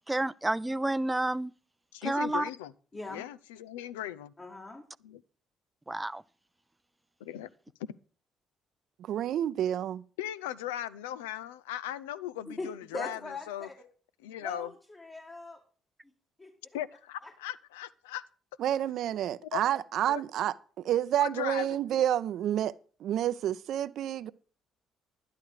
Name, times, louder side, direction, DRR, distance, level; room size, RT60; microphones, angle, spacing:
voice 1, 0.1-1.5 2.0-2.4 5.9-6.2, right 2 dB, 15° right, 0.4 m, -29 dB
voice 2, 1.9-2.7 3.1-4.3 5.0-5.2 7.2-7.5 10.2-13.2 13.5-13.7 14.2-14.7 16.7-18.2 19.4-19.6 20.1-20.2 21.2-21.8, left 12 dB, 90° left, 0.4 m, -38 dB
voice 3, 2.9-3.2 4.4-4.9 12.5-13.7 14.4-15.6 16.4-16.5 17.2-17.3, left 2 dB, 30° left, 2.2 m, -41 dB
voice 4, 9.0-10.0 18.6-22.7 23.0-24.3, right 11 dB, 65° right, 0.5 m, -29 dB
11.0 x 10.5 x 4.9 m
hypercardioid pair, 55°, 0 cm